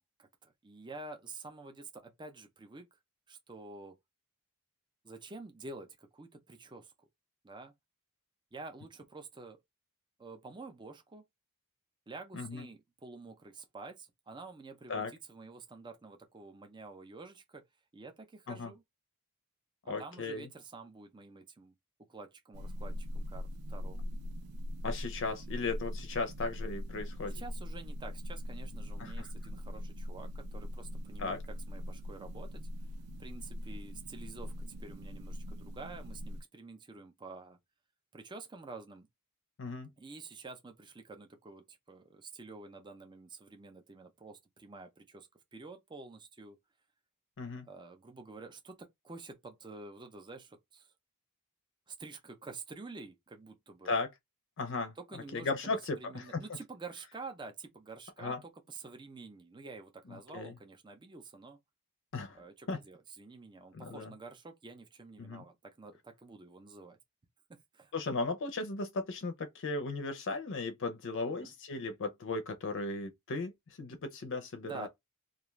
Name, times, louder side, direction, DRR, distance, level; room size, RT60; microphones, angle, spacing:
voice 1, 0.0-2.8 3.3-4.0 5.0-6.9 7.4-7.7 8.5-9.6 10.2-11.2 12.1-17.6 17.9-18.8 19.8-21.7 22.1-24.0 27.3-32.9 33.2-34.5 34.8-37.6 38.1-39.1 40.0-46.6 47.7-50.9 51.9-54.0 54.9-61.6 62.3-67.0 67.5-67.9 71.2-71.5 74.6-74.9, right 3 dB, 20° right, 0.5 m, -49 dB
voice 2, 12.3-12.6 14.9-15.1 18.5-18.7 19.9-20.5 24.8-27.4 29.0-29.3 31.2-31.4 39.6-39.9 47.4-47.7 53.8-54.1 54.6-54.9 55.3-56.4 58.2-58.4 60.1-60.5 62.1-62.4 62.7-62.8 63.7-64.1 65.2-65.4 67.9-74.9, left 3 dB, 55° left, 0.5 m, -36 dB
sound 1, 22.5-36.4, left 1 dB, 90° right, 0.3 m, -41 dB
2.4 x 2.3 x 3.0 m
head